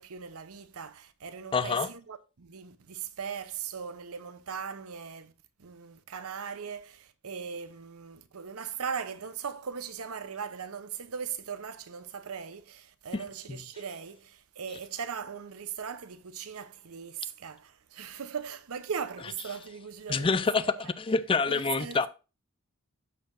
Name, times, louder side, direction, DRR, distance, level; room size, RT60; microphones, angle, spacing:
voice 1, 0.0-5.3 5.6-20.9 21.4-22.1, right 7 dB, 90° right, 0.7 m, -39 dB
voice 2, 1.5-1.9 13.1-13.2 13.5-13.6 20.1-22.1, left 4 dB, 25° left, 0.4 m, -27 dB
13.0 x 4.6 x 2.5 m
head